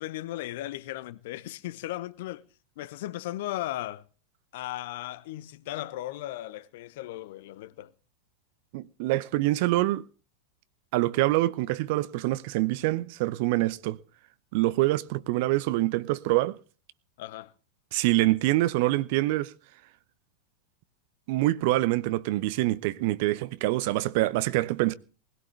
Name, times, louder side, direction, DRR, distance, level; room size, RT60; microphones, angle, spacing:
voice 1, 0.0-2.4 2.8-4.0 4.5-7.9 17.2-17.5, left 15 dB, 50° left, 0.9 m, -36 dB
voice 2, 8.7-10.0 10.9-14.0 14.5-16.6 17.9-19.5 21.3-24.9, right 18 dB, 50° right, 0.7 m, -25 dB
20.5 x 16.5 x 3.3 m
figure-of-eight pair, 90°, 0 cm